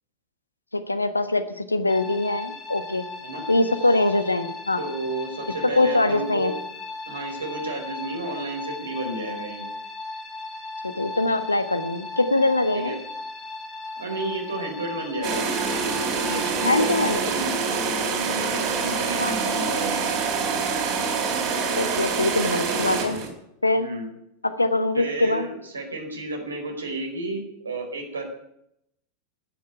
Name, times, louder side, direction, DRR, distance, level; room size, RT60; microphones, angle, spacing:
voice 1, 0.7-3.0 3.5-4.8 5.8-6.5 10.8-13.0 16.6-17.2 19.2-19.3 21.8-23.2 23.6-23.9 24.4-25.5, left 2 dB, 80° left, 10 dB, 1.2 m, -23 dB
sound 1, 1.9-17.2, left 3 dB, 20° left, 2.7 m, -37 dB
voice 2, 4.8-6.6 7.1-9.7 12.7-13.0 14.0-15.4 16.2-16.8 17.2-20.0 22.7-23.2 23.8-24.1 24.9-28.2, right 2 dB, 75° right, 2 dB, 4.7 m, -32 dB
sound 2, 15.2-23.3, right 5 dB, 40° right, 4.4 m, -26 dB
11.5 x 9.8 x 9.6 m, 0.81 s
figure-of-eight pair, 90°, 0 cm